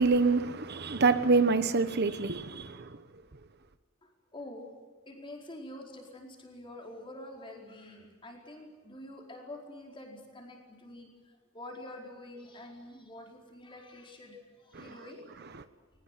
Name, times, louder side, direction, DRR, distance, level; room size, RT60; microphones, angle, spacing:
voice 1, 0.0-2.9 14.7-14.8, right 4 dB, 50° right, 1.0 m, -26 dB
voice 2, 4.0-4.7 5.0-11.1 11.5-15.5, left 1 dB, 25° left, 4.8 m, -47 dB
21.5 x 20.0 x 9.4 m
head